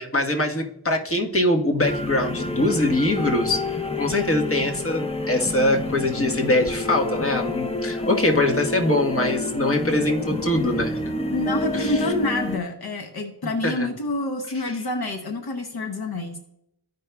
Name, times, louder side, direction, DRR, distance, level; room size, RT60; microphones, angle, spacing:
voice 1, 0.0-3.6 3.9-11.0 11.7-12.0 13.6-13.9 14.5-14.6, left 1 dB, 35° left, 2 dB, 1.3 m, -23 dB
sound 1, 1.8-12.6, left 2 dB, 15° left, 0.6 m, -28 dB
voice 2, 11.3-16.4, left 2 dB, 65° left, 4 dB, 0.9 m, -27 dB
14.5 x 5.3 x 2.3 m, 0.81 s
cardioid pair, 40°, 40 cm